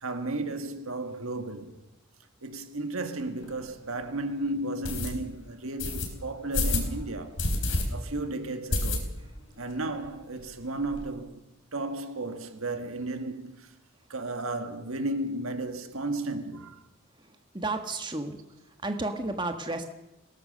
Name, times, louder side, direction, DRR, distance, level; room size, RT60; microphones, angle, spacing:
voice 1, 0.0-1.8 2.4-7.4 7.9-9.1 9.6-11.4 11.7-13.7 14.1-16.8, right 2 dB, 80° right, 1.7 m, -34 dB
sound 1, 3.4-3.5 4.0-4.1 4.8-5.1 5.8-6.1 6.5-6.9 7.4-7.8 8.1-8.2 8.7-9.4 9.7-9.8 10.0-10.1 10.4-11.0, left 2 dB, 65° left, 4.2 m, -28 dB
voice 2, 17.5-18.4 18.8-19.8, right 2 dB, 20° right, 1.4 m, -31 dB
21.5 x 18.0 x 6.7 m
head